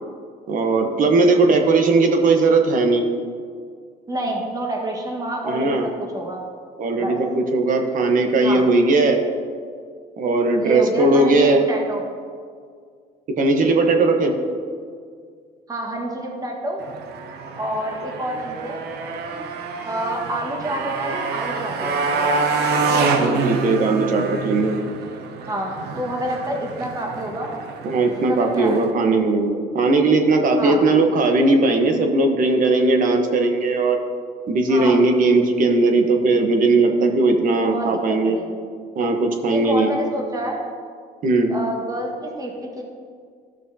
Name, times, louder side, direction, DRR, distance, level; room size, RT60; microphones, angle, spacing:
voice 1, 0.5-3.1 5.5-5.9 6.8-9.2 10.2-11.6 13.4-14.3 23.2-24.8 27.8-34.0 34.5-38.4 39.0-39.9 41.2-41.5, right 3 dB, 50° right, 4 dB, 1.1 m, -18 dB
voice 2, 4.1-6.4 7.0-7.2 8.4-8.6 10.6-12.0 15.7-16.9 17.6-18.9 19.9-22.3 25.5-27.6 28.2-28.8 29.0-29.1 30.6-30.8 34.7-35.0 37.6-38.0 38.2-38.6 39.5-40.6 41.5-42.8, right 1 dB, 20° right, 0 dB, 1.4 m, -28 dB
Motorcycle, 16.8-28.9, right 4 dB, 75° right, 0.8 m, -26 dB
13.5 x 6.0 x 2.8 m, 2.1 s
cardioid pair, 110°, 17 cm